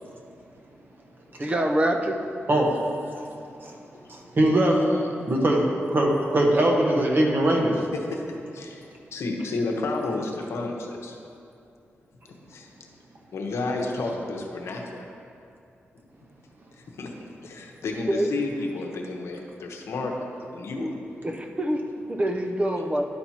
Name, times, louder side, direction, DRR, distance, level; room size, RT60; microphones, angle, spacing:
voice 1, 1.4-2.2 18.1-18.3 20.7-20.9 21.2-23.1, right 1 dB, 25° right, 4 dB, 0.7 m, -25 dB
voice 2, 2.5-2.9 3.6-3.8 4.1-4.8 5.3-7.7, right 1 dB, 50° right, -1 dB, 1.3 m, -21 dB
voice 3, 4.6-5.1 7.9-8.2 8.5-8.8 9.1-11.2 12.5-12.7 13.3-15.1 16.8-17.1 17.4-20.2 20.5-20.9 22.8-22.9, left 3 dB, 80° left, 1 dB, 0.9 m, -31 dB
11.5 x 4.4 x 4.3 m, 2.6 s
cardioid pair, 75°, 5 cm